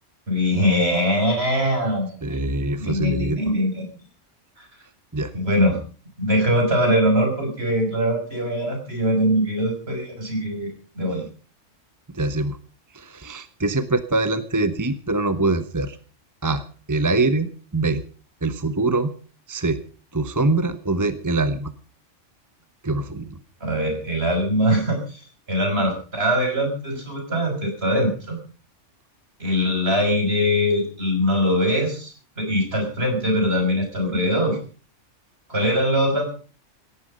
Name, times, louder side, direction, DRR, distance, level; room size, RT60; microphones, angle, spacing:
voice 1, 0.3-2.4 2.8-3.9 4.6-4.7 5.3-5.8 6.2-10.7 10.9-11.3 23.6-28.4 29.4-34.6 35.5-36.3, equal, 55° right, 3 dB, 6.7 m, -22 dB
voice 2, 2.2-3.4 5.1-5.3 12.1-12.6 12.9-16.0 16.4-16.6 16.9-18.0 18.4-19.1 19.5-19.8 20.1-21.7 22.8-23.4, right 2 dB, 15° right, 11 dB, 1.0 m, -23 dB
18.0 x 14.0 x 5.4 m, 0.40 s
omnidirectional pair, 1.3 m